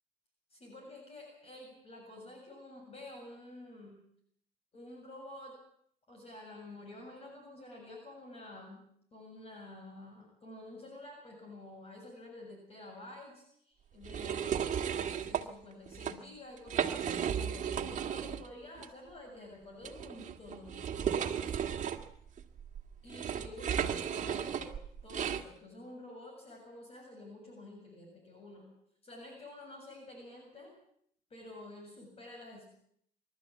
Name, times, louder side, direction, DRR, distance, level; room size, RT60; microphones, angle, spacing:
voice 1, 0.5-4.0 4.7-5.6 6.1-8.9 9.1-14.6 14.9-21.7 23.0-24.8 25.0-28.7 29.0-30.7 31.3-32.7, left 2 dB, 35° left, 1 dB, 7.3 m, -50 dB
sound 1, 14.0-15.4 15.9-16.1 16.6-18.5 18.8-18.9 19.8-25.4, right 8 dB, 45° right, 1.9 m, -34 dB
25.0 x 13.0 x 8.5 m, 0.67 s
cardioid pair, 110°, 17 cm